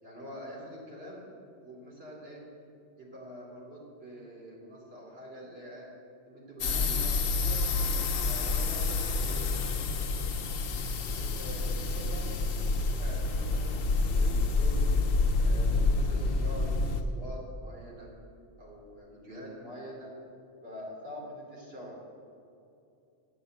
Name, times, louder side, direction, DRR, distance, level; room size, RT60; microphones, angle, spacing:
voice 1, 0.0-1.3 1.6-2.5 3.0-5.9 6.3-7.6 8.2-9.7 11.2-14.9 15.4-18.1 18.6-20.1 20.6-22.0, equal, 55° right, -4 dB, 3.0 m, -45 dB
sound 1, 6.6-17.0, left 3 dB, 55° left, 0.9 m, -28 dB
8.6 x 7.2 x 7.8 m, 2.7 s
omnidirectional pair, 1.2 m